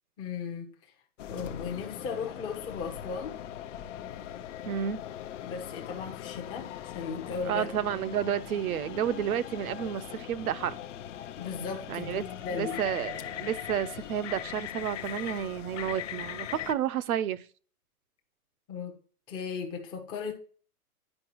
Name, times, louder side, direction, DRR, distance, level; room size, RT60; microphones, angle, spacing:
voice 1, 0.2-0.9 1.3-3.4 5.4-7.7 11.4-12.8 18.7-19.0 19.3-20.3, left 6 dB, 10° left, 0.6 m, -36 dB
sound 1, 1.2-16.7, left 11 dB, 55° left, 0.6 m, -40 dB
voice 2, 4.7-5.0 7.4-10.8 11.9-12.2 12.5-17.4, right 9 dB, 65° right, 0.7 m, -31 dB
9.8 x 4.7 x 2.9 m
hypercardioid pair, 155°, 46 cm